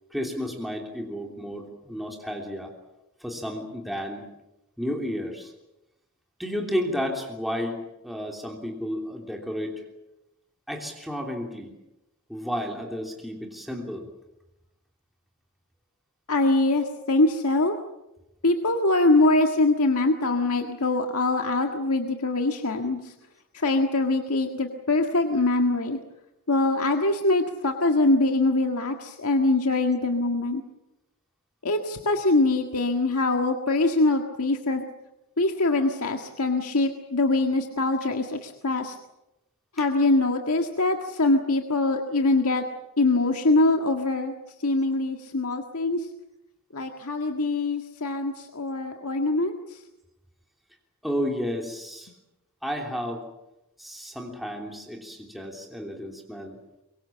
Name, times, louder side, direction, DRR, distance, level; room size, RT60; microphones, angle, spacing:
voice 1, 0.1-2.7 3.2-4.2 4.8-5.5 6.4-9.8 10.7-11.7 12.3-14.1 51.0-52.1 52.6-53.3 53.8-56.6, equal, ahead, 0 dB, 3.1 m, -32 dB
voice 2, 16.3-17.8 18.4-23.1 23.5-26.0 26.5-30.6 31.6-34.9 35.4-39.0 39.7-42.6 43.0-44.3 44.6-46.1 46.7-49.8, left 2 dB, 80° left, 4 dB, 1.8 m, -23 dB
24.5 x 23.5 x 7.5 m, 0.93 s
head